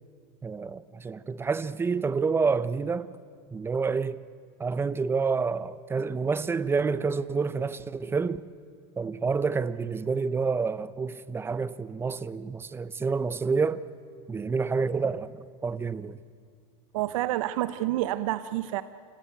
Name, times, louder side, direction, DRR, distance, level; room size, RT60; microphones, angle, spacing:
voice 1, 0.4-3.1 3.5-4.2 4.6-8.5 9.0-13.8 14.3-16.2, right 5 dB, 15° right, 0.7 m, -28 dB
voice 2, 16.9-18.8, right 15 dB, 80° right, 0.7 m, -28 dB
28.5 x 17.5 x 9.1 m
supercardioid pair, 135°, 17 cm